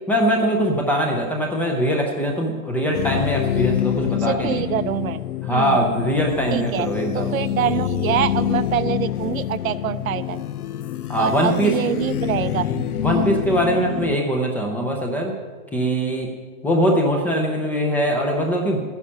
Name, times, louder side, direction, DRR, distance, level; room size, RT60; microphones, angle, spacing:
voice 1, 0.1-4.6 5.4-7.4 11.1-11.8 12.7-15.4 15.7-16.3 16.6-18.8, equal, 5° left, 1 dB, 0.5 m, -22 dB
sound 1, 2.9-14.2, left 12 dB, 80° left, 0.7 m, -26 dB
voice 2, 4.4-5.2 5.5-5.8 6.5-6.9 7.1-10.4 11.2-12.7, right 11 dB, 65° right, 13 dB, 0.8 m, -25 dB
13.0 x 9.9 x 5.6 m, 1.4 s
hypercardioid pair, 140°, 44 cm